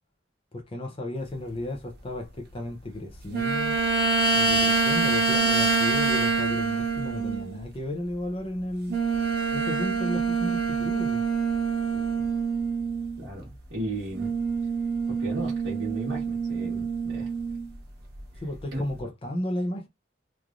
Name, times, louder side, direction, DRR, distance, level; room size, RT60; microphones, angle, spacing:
voice 1, 0.5-3.8 4.3-9.0 9.5-11.2 18.4-19.9, left 1 dB, 30° left, 0.5 m, -33 dB
sound 1, 3.3-7.6 8.9-13.2 14.1-17.7 18.2-18.3, right 4 dB, 55° right, 0.9 m, -26 dB
voice 2, 11.9-12.2 13.2-14.3 15.1-17.3 18.7-18.8, right 1 dB, 75° right, 1.3 m, -35 dB
3.2 x 2.4 x 2.4 m
head